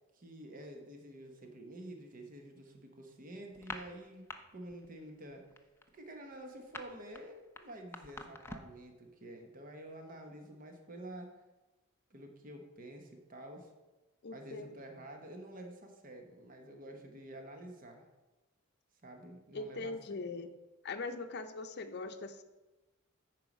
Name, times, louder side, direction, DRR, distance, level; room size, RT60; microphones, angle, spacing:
voice 1, 0.1-5.5 5.9-11.3 12.1-13.7 14.3-18.0 19.0-19.9, right 1 dB, 40° right, 4 dB, 1.1 m, -49 dB
sound 1, 3.5-4.4 4.7-5.0 5.3-8.8, left 2 dB, 10° left, 0.5 m, -46 dB
voice 2, 14.2-14.7 19.5-20.5 20.8-22.4, left 3 dB, 50° left, 7 dB, 0.7 m, -41 dB
9.1 x 4.7 x 6.1 m, 1.1 s
head